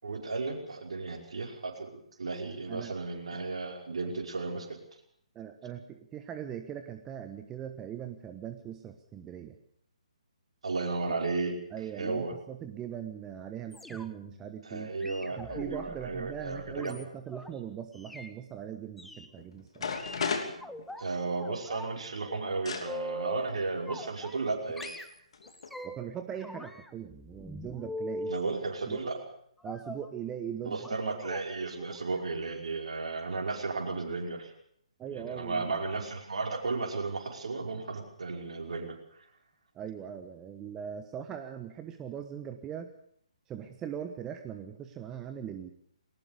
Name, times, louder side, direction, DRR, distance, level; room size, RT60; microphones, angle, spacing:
voice 1, 0.0-4.8 10.6-11.6 12.0-12.3 14.7-17.0 21.0-24.9 28.3-29.2 30.6-34.5 35.1-38.9, right 3 dB, 60° right, 2 dB, 5.3 m, -34 dB
voice 2, 5.3-9.6 11.7-15.0 15.3-19.9 25.8-28.3 28.8-29.1 29.6-30.8 35.0-35.7 39.7-42.9 43.5-45.7, right 9 dB, 15° right, 7 dB, 1.2 m, -40 dB
sound 1, 13.7-14.3 15.0-17.5 17.9-18.3 19.0-19.3 19.9-21.0 21.4-22.0 22.3-23.5 23.9-24.5 24.8-26.1 26.4-28.5 29.6-30.1 30.8-31.0 31.2-31.4 31.8-32.0 32.3-32.4, equal, ahead, 1.1 m, -42 dB
sound 2, 19.4-19.5 19.8-21.4 22.7-22.9 24.0-24.1 24.8-25.0 25.3-25.8, left 5 dB, 50° left, 3.1 m, -34 dB
21.5 x 19.5 x 6.9 m, 0.66 s
figure-of-eight pair, 135°, 4 cm